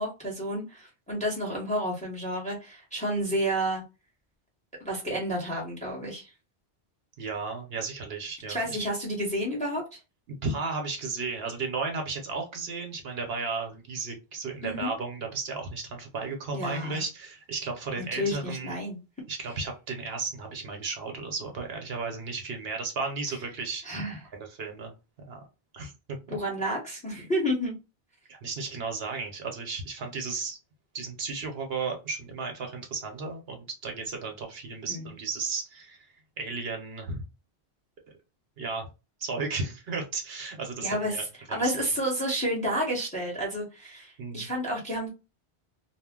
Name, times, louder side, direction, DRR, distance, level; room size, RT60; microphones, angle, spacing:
voice 1, 0.0-3.8 4.8-6.3 8.5-10.0 14.6-14.9 16.5-17.0 18.0-19.0 23.8-24.2 26.3-27.7 34.9-35.1 40.8-45.1, equal, 5° left, -1 dB, 0.9 m, -30 dB
voice 2, 7.2-8.6 10.3-18.8 19.3-23.8 24.3-24.9 25.3-25.4 25.7-25.9 28.3-30.6 30.9-36.1 36.4-37.2 38.6-38.9 39.2-41.2 41.5-41.7 44.2-44.5, right 4 dB, 65° right, 3 dB, 0.9 m, -34 dB
2.4 x 2.0 x 3.5 m, 0.28 s
omnidirectional pair, 1.1 m